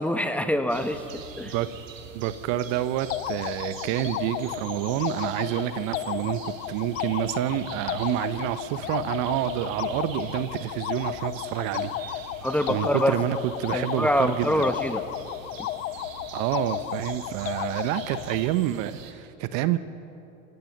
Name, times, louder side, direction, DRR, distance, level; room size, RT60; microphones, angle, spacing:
voice 1, 0.0-1.5 12.4-13.2 13.7-15.0, equal, 5° left, 8 dB, 1.4 m, -25 dB
sound 1, 0.7-19.1, right 6 dB, 85° right, 1.8 m, -44 dB
voice 2, 2.1-12.2 12.7-14.7 16.3-19.8, right 13 dB, 55° right, 13 dB, 1.0 m, -28 dB
sound 2, 3.1-18.5, left 13 dB, 75° left, 0.8 m, -34 dB
26.0 x 17.5 x 6.7 m, 2.7 s
hypercardioid pair, 90°, 38 cm